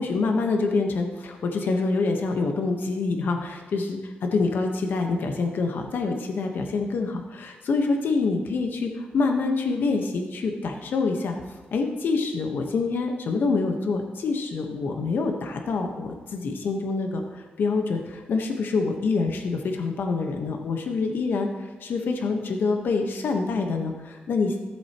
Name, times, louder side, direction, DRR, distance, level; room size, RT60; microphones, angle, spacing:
voice 1, 0.0-11.4 11.7-24.5, left 4 dB, 80° left, 3 dB, 1.0 m, -26 dB
14.0 x 7.7 x 2.9 m, 1.2 s
cardioid pair, 70°, 3 cm